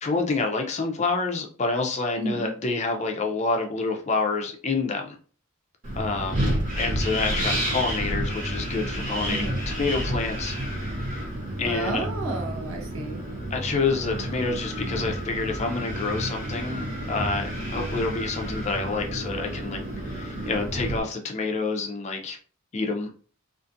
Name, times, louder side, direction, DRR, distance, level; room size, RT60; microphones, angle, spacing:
voice 1, 0.0-5.2 6.0-6.4 6.8-10.9 11.6-12.1 13.5-19.8 20.1-22.4 22.7-23.1, left 3 dB, 30° left, 2 dB, 0.4 m, -28 dB
voice 2, 2.2-2.5 9.3-9.6 11.6-13.2, right 2 dB, 80° right, 1 dB, 0.8 m, -31 dB
Wind, 5.8-21.0, equal, 35° right, 1.0 m, -30 dB
2.5 x 2.4 x 2.6 m, 0.40 s
head